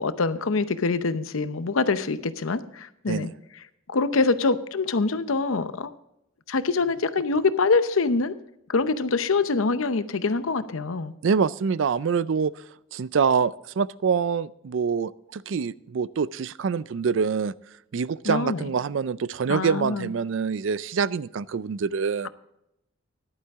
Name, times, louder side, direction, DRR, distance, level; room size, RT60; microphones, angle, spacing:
voice 1, 0.0-3.3 3.9-5.9 6.5-8.3 8.7-11.1 18.2-18.6 19.5-20.1, left 3 dB, 90° left, 12 dB, 0.7 m, -24 dB
voice 2, 11.2-12.5 12.9-17.5 17.9-22.3, right 6 dB, 70° right, 19 dB, 0.4 m, -25 dB
14.5 x 11.0 x 3.6 m, 0.81 s
head